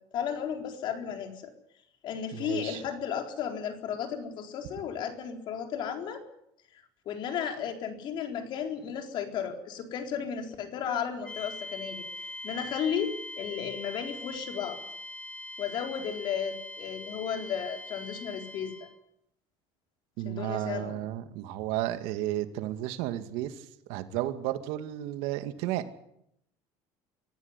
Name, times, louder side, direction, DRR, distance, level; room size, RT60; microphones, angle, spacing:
voice 1, 0.1-1.5 2.0-6.2 7.1-14.8 15.6-18.9 20.3-21.0, left 8 dB, 50° left, 5 dB, 4.1 m, -34 dB
voice 2, 2.3-2.8 20.2-25.8, right 13 dB, 80° right, 9 dB, 2.2 m, -33 dB
sound 1, 11.2-19.0, left 1 dB, 10° left, 3.1 m, -42 dB
25.5 x 14.5 x 9.8 m, 0.76 s
cardioid pair, 145°, 10 cm